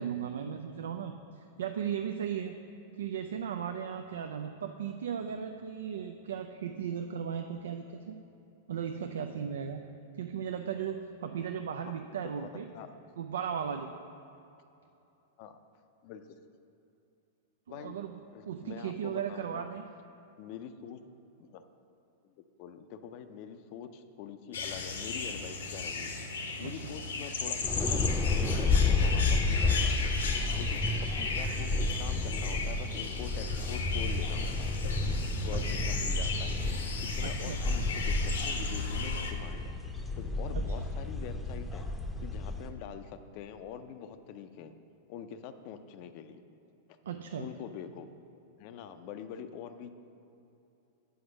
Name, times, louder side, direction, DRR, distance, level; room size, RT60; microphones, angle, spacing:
voice 1, 0.0-2.6 3.0-8.2 8.7-9.8 10.2-12.7 13.2-13.9 17.7-18.2 18.5-19.8 26.6-26.9 35.5-35.9 37.2-37.6 40.5-40.8 47.0-47.5, right 8 dB, 70° right, 6 dB, 0.4 m, -36 dB
voice 2, 18.3-19.7 20.4-21.0 21.4-21.6 22.2-26.1 26.6-28.1 28.5-30.1 30.5-30.8 31.2-34.7 35.4-36.5 37.2-39.7 40.2-41.8 42.2-44.7 45.1-46.4 47.4-48.1 48.6-49.9, left 8 dB, 50° left, 9 dB, 0.5 m, -44 dB
sound 1, 24.5-39.3, left 4 dB, 75° left, 1.0 m, -36 dB
sound 2, 27.6-42.7, left 3 dB, 10° left, 0.7 m, -31 dB
7.9 x 5.0 x 6.4 m, 2.9 s
figure-of-eight pair, 100°, 0 cm